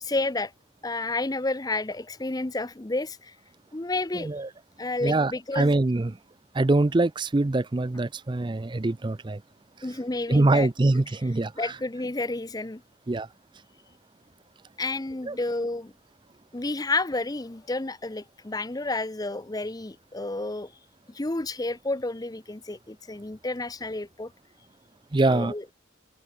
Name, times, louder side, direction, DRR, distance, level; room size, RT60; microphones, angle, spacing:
voice 1, 0.0-0.5 0.8-3.4 3.7-4.3 4.8-5.7 9.8-10.7 11.6-12.8 14.8-15.9 16.5-20.7 21.1-24.3 25.3-25.6, left 2 dB, 20° left, 0.6 m, -30 dB
voice 2, 4.1-4.5 5.0-6.1 6.5-9.4 10.3-11.7 13.1-13.3 15.3-15.4 25.1-25.5, right 2 dB, 25° right, 0.4 m, -24 dB
head